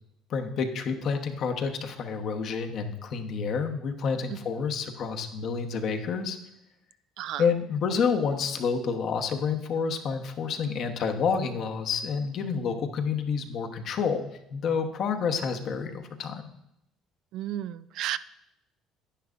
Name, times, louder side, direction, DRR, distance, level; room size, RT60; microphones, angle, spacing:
voice 1, 0.3-6.4 7.4-16.4, left 6 dB, 60° left, 5 dB, 1.0 m, -29 dB
voice 2, 17.3-18.2, right 12 dB, 70° right, 15 dB, 0.3 m, -32 dB
10.0 x 10.0 x 2.5 m, 0.81 s
supercardioid pair, 80°, 0 cm